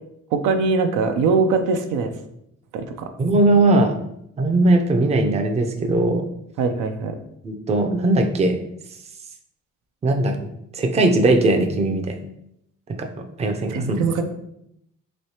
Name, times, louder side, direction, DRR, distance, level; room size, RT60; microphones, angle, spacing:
voice 1, 0.3-2.1 2.7-3.1 6.6-7.2 13.7-14.2, right 4 dB, 85° right, 6 dB, 0.4 m, -21 dB
voice 2, 3.2-3.9 4.4-6.3 7.4-8.5 10.0-12.1 12.9-13.1 13.4-14.0, right 2 dB, 20° right, 4 dB, 0.4 m, -19 dB
3.1 x 3.1 x 2.8 m, 0.77 s
cardioid pair, 90°, 30 cm